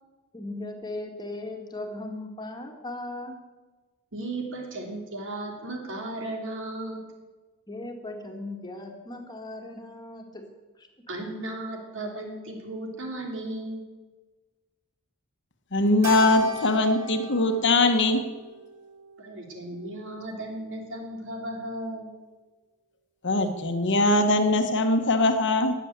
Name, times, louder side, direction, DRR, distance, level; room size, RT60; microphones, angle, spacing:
voice 1, 0.3-3.4 7.7-10.5 10.8-10.9, left 2 dB, 20° left, 3 dB, 1.9 m, -37 dB
voice 2, 4.1-7.0 11.1-13.8 19.2-22.1, right 1 dB, 60° right, 2 dB, 3.2 m, -35 dB
voice 3, 15.7-18.2 23.2-25.7, left 2 dB, 55° left, 7 dB, 1.4 m, -21 dB
Keyboard (musical), 16.0-20.6, right 6 dB, 90° right, 1.8 m, -40 dB
19.0 x 7.4 x 8.1 m, 1.3 s
head